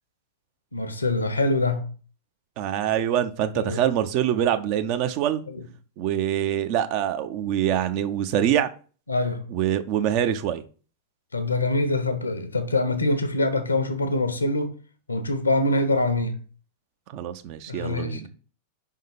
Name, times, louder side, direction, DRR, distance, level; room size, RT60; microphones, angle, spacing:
voice 1, 0.7-1.8 3.5-3.8 5.5-5.6 9.1-9.4 11.3-14.7 15.1-16.4 17.7-18.3, left 2 dB, 80° left, 0.8 m, -24 dB
voice 2, 2.6-5.4 6.0-8.7 9.5-10.6 17.1-18.3, right 10 dB, 45° right, 0.6 m, -25 dB
5.5 x 3.7 x 5.5 m
figure-of-eight pair, 90°, 0 cm